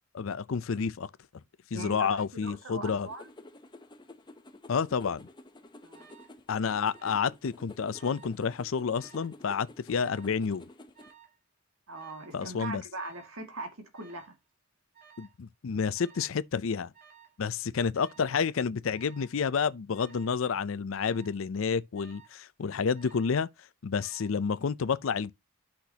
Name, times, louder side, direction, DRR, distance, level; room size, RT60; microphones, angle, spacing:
voice 1, 0.1-1.1 1.7-3.1 4.7-5.2 6.5-10.6 12.3-12.8 15.2-16.9 17.4-23.5 23.8-25.3, left 6 dB, 65° left, 0.5 m, -30 dB
voice 2, 1.7-3.3 5.8-6.1 11.9-14.3, right 2 dB, 80° right, 2.0 m, -41 dB
sound 1, 2.8-11.1, left 2 dB, 20° left, 0.8 m, -51 dB
Alarm, 5.9-6.4 6.9-7.4 7.7-8.4 8.9-9.4 9.9-10.4 10.9-11.4 11.9-12.4 12.9-13.4 13.9-14.4 14.9-15.4 15.9-16.4 16.9-17.4 17.9-18.4 18.9-19.4 19.9-20.4 20.9-21.4 21.9-22.4 22.9-23.4 23.9-24.4, right 7 dB, 40° right, 2.1 m, -57 dB
10.5 x 6.0 x 2.8 m
head